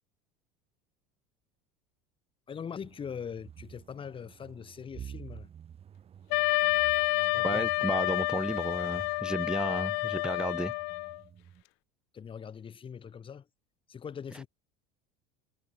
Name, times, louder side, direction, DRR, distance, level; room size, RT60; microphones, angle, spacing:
voice 1, 2.5-5.5 7.3-7.7 12.1-13.5 13.9-14.5, left 7 dB, 25° left, 7.4 m, -42 dB
sound 1, 2.8-11.6, right 8 dB, 30° right, 3.5 m, -50 dB
Wind instrument woodwind instrument, 6.3-11.2, left 40 dB or more, 65° left, 0.8 m, -29 dB
voice 2, 7.4-10.7, right 2 dB, 5° right, 0.3 m, -33 dB
supercardioid pair, 120°, 19 cm